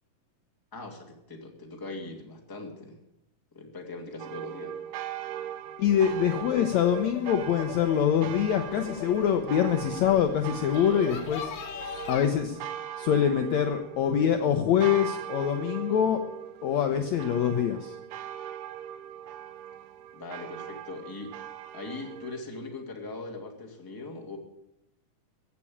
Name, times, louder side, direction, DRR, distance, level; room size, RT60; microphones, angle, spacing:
voice 1, 0.7-3.0 3.5-4.8 6.4-6.5 20.1-21.4 21.7-24.4, left 3 dB, 10° left, 1 dB, 1.5 m, -40 dB
sound 1, 4.2-22.4, right 10 dB, 90° right, 2.8 m, -40 dB
voice 2, 5.8-11.5 12.1-12.6 13.0-16.2 16.6-18.0, left 9 dB, 85° left, 6 dB, 1.6 m, -25 dB
sound 2, 5.8-12.3, left 8 dB, 60° left, 2.5 m, -41 dB
15.5 x 8.5 x 8.7 m, 0.82 s
omnidirectional pair, 4.4 m